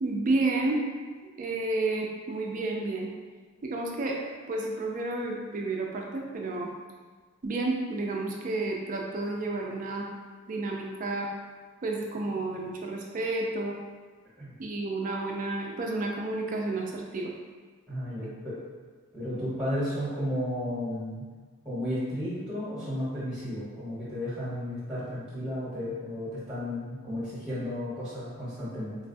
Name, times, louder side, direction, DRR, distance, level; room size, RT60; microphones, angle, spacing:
voice 1, 0.0-0.8 1.4-3.1 3.6-6.7 7.4-10.1 10.5-11.3 11.8-13.8 14.6-17.3 18.2-18.3, right 2 dB, 35° right, 0 dB, 0.3 m, -31 dB
voice 2, 17.9-18.6 19.1-21.2 21.6-29.0, equal, 5° right, -10 dB, 1.0 m, -33 dB
3.8 x 2.2 x 2.6 m, 1.5 s
head